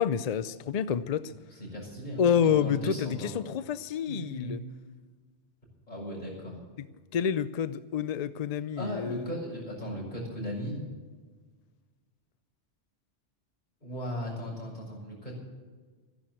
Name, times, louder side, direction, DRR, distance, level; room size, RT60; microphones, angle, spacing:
voice 1, 0.0-1.3 2.2-4.6 7.1-9.3, left 8 dB, 55° left, 14 dB, 0.4 m, -28 dB
voice 2, 1.6-3.3 4.1-4.6 5.9-6.6 8.8-10.8 13.8-15.4, equal, 40° left, -3 dB, 6.3 m, -37 dB
14.0 x 11.0 x 7.5 m, 1.4 s
omnidirectional pair, 1.2 m